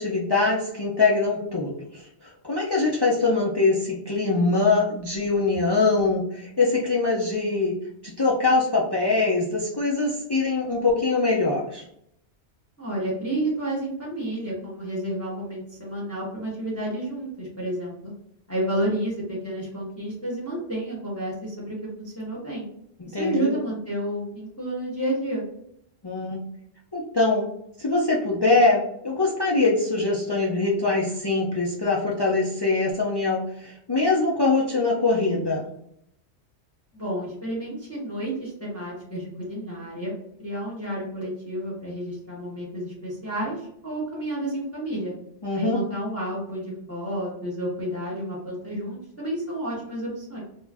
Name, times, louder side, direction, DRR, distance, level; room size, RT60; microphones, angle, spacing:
voice 1, 0.0-7.7 8.0-11.8 23.0-23.5 26.0-26.4 26.9-27.5 27.8-35.7 45.4-45.8, left 3 dB, 45° left, -4 dB, 0.3 m, -23 dB
voice 2, 12.8-18.1 18.5-22.7 23.0-25.4 36.9-45.1 45.5-50.4, right 1 dB, 15° left, -6 dB, 0.8 m, -30 dB
2.5 x 2.1 x 3.3 m, 0.73 s
omnidirectional pair, 1.2 m